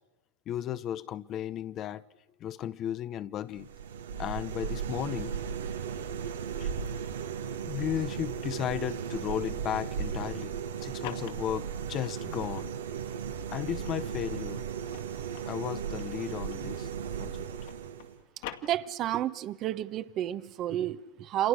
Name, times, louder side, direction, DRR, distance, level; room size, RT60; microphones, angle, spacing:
voice 1, 0.5-2.0 2.4-3.7 4.2-5.3 6.6-6.7 7.6-10.5 10.8-12.7 13.5-14.7 15.5-16.9 17.2-17.5, left 11 dB, 35° left, 0.8 m, -34 dB
sound 1, 3.5-18.2, right 7 dB, 85° right, 2.3 m, -36 dB
sound 2, 10.6-12.7 13.3-17.0 17.3-19.3, left 12 dB, 60° left, 2.4 m, -47 dB
voice 2, 18.6-21.5, right 12 dB, 35° right, 1.1 m, -31 dB
30.0 x 27.0 x 6.5 m
hypercardioid pair, 120°, 0 cm